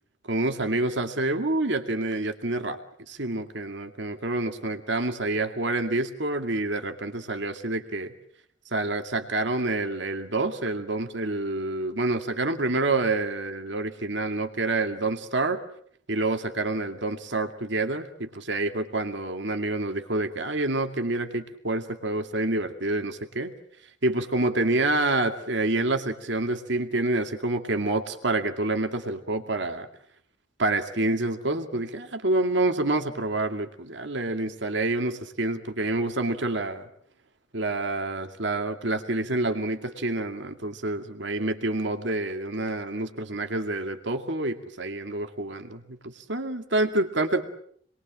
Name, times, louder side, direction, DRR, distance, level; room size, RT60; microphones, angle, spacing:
voice 1, 0.3-2.8 3.1-8.1 8.7-15.6 16.1-23.5 24.0-29.9 30.6-36.9 37.5-47.5, right 2 dB, 70° right, 5 dB, 2.3 m, -27 dB
28.0 x 21.5 x 7.5 m, 0.64 s
head